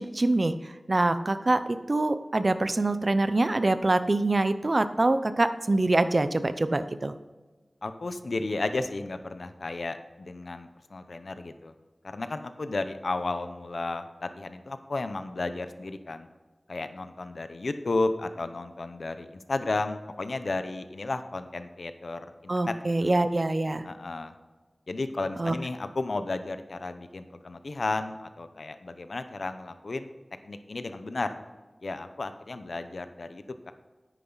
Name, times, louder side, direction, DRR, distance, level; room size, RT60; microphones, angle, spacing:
voice 1, 0.0-7.1 22.5-23.9 25.4-25.5, right 2 dB, 50° right, 12 dB, 0.6 m, -25 dB
voice 2, 7.8-11.7 12.0-16.3 16.7-23.1 23.8-24.3 24.9-30.1 30.4-31.3 31.8-33.7, left 2 dB, 80° left, 9 dB, 0.8 m, -33 dB
9.9 x 9.2 x 4.0 m, 1.3 s
wide cardioid pair, 65°, 0 cm